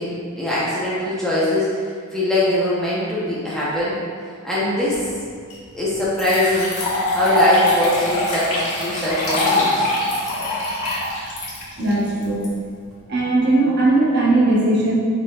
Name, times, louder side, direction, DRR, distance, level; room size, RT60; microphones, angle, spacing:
voice 1, 0.0-4.0 4.4-5.1 5.7-6.8 7.1-9.9, left 1 dB, ahead, -9 dB, 0.8 m, -22 dB
sound 1, 5.5-5.6 6.1-12.4, left 1 dB, 80° left, 1.4 m, -22 dB
voice 2, 11.8-12.5 13.1-14.9, right 2 dB, 50° right, -6 dB, 0.9 m, -18 dB
4.9 x 4.5 x 2.4 m, 2.1 s
head